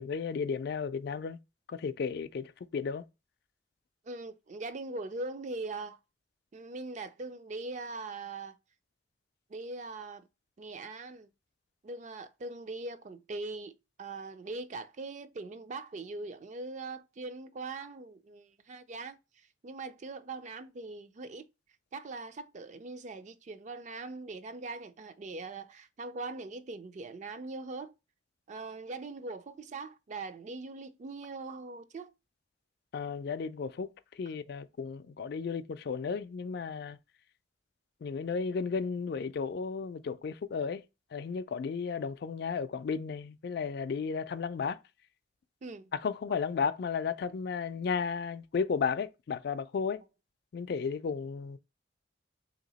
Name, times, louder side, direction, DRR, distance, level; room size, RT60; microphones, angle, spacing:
voice 1, 0.0-1.4 1.7-3.0 32.9-33.9 34.2-37.0 38.0-40.8 41.1-44.8 45.9-50.0 50.5-51.6, left 5 dB, 60° left, 0.3 m, -34 dB
voice 2, 4.0-6.0 6.5-8.6 9.5-10.3 10.6-11.3 11.8-21.5 21.9-27.9 28.5-32.1 45.6-45.9, right 3 dB, 40° right, 0.4 m, -41 dB
3.4 x 2.9 x 4.0 m
head